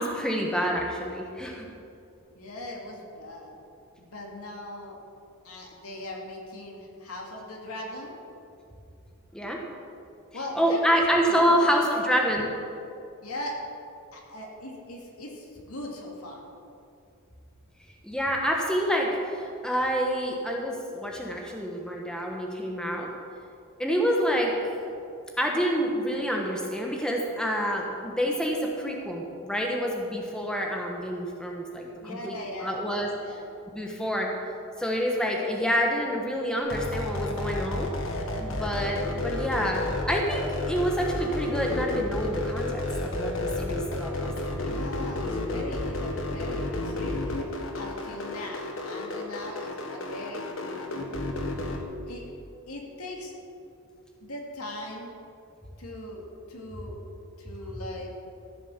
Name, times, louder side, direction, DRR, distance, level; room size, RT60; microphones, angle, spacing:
voice 1, 0.0-1.7 9.3-9.6 10.6-12.5 18.0-23.1 23.8-24.5 25.4-33.1 33.7-34.3 34.8-37.9 38.4-44.6, equal, 5° left, 0 dB, 1.2 m, -27 dB
voice 2, 2.3-3.6 4.0-5.0 5.4-8.1 10.3-12.3 13.2-13.6 14.1-16.4 31.9-32.8 33.1-33.5 44.4-47.5 47.7-51.4 52.0-52.2 52.7-53.3 54.2-55.1 55.8-57.0 57.4-58.1, left 1 dB, 85° left, 0 dB, 2.4 m, -39 dB
sound 1, 36.6-51.8, left 2 dB, 60° left, 1.5 m, -31 dB
14.5 x 7.2 x 7.3 m, 2.6 s
head